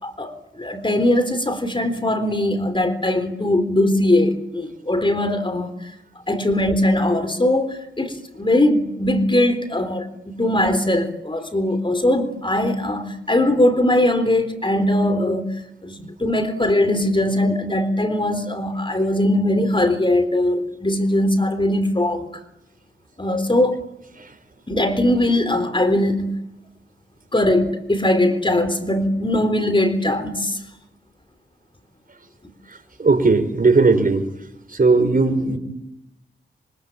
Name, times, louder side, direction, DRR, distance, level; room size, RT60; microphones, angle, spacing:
voice 1, 0.0-5.9 6.3-15.5 15.8-22.4 23.2-23.8 24.7-26.4 27.3-30.6, left 1 dB, 25° left, 3.9 m, -20 dB
voice 2, 32.7-34.3 34.7-35.6, right 3 dB, 45° right, 5.2 m, -18 dB
26.5 x 25.0 x 8.9 m
cardioid pair, 55°, 20 cm